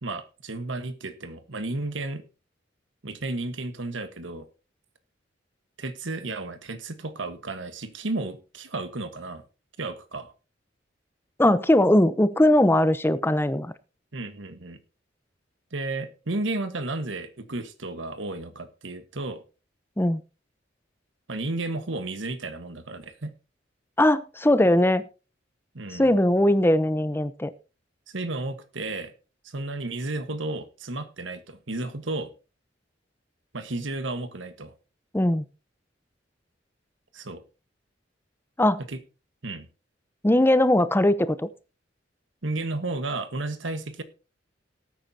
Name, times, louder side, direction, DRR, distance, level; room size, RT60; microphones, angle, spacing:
voice 1, 0.0-2.2 3.0-4.5 5.8-9.4 9.8-10.3 14.1-14.8 15.7-19.4 21.3-23.3 25.7-26.2 28.1-29.1 29.4-32.3 33.5-34.7 37.1-37.4 38.9-39.0 39.4-39.6 42.4-44.0, right 2 dB, 85° right, 10 dB, 1.4 m, -33 dB
voice 2, 11.4-13.7 20.0-20.2 24.0-25.0 25.9-27.5 35.1-35.5 38.6-38.8 40.2-41.5, left 1 dB, 15° left, 13 dB, 0.7 m, -20 dB
18.5 x 8.9 x 2.8 m, 0.32 s
head